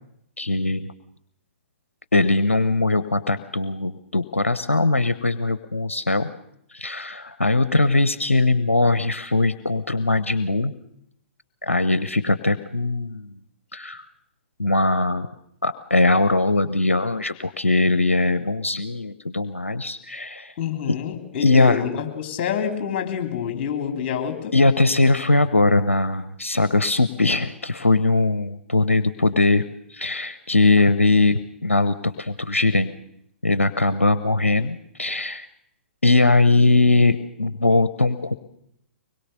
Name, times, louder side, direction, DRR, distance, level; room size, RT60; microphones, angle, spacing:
voice 1, 0.4-0.9 2.1-6.3 6.7-10.7 11.6-13.4 13.7-14.1 14.6-15.3 15.6-20.5 20.9-21.0 21.4-21.8 24.5-32.9 33.4-35.5 36.0-38.3, left 2 dB, 85° left, 13 dB, 0.8 m, -20 dB
voice 2, 20.6-24.5, left 8 dB, 40° left, 5 dB, 3.7 m, -27 dB
24.0 x 21.5 x 6.8 m, 0.73 s
figure-of-eight pair, 115°, 7 cm